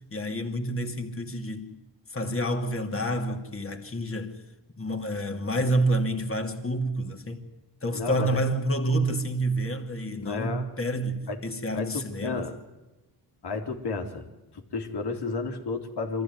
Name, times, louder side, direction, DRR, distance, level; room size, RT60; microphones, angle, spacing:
voice 1, 0.1-1.7 2.1-4.4 4.8-7.4 7.8-12.5, right 1 dB, 30° left, 2.7 m, -28 dB
voice 2, 7.9-8.4 10.2-10.7 11.3-11.4 11.7-12.6 13.4-14.3 14.5-16.2, left 3 dB, 75° left, 3.0 m, -32 dB
23.5 x 14.5 x 9.4 m
cardioid pair, 75°, 40 cm